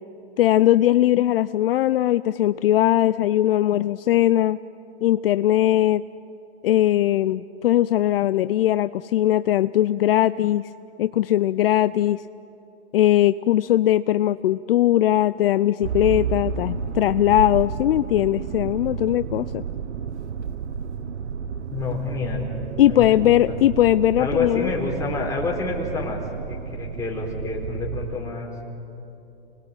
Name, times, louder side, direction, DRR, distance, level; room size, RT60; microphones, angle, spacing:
voice 1, 0.4-4.6 5.0-6.0 6.6-10.7 11.0-12.2 12.9-19.6 22.8-24.7, left 13 dB, 55° left, 14 dB, 0.6 m, -20 dB
Motor vehicle (road), 15.8-28.2, right 6 dB, 85° right, 1.0 m, -31 dB
voice 2, 21.7-22.5 22.9-23.6 24.2-26.2 26.5-28.5, left 3 dB, 10° left, -1 dB, 4.3 m, -28 dB
29.0 x 20.5 x 9.0 m, 2.9 s
hypercardioid pair, 140°, 34 cm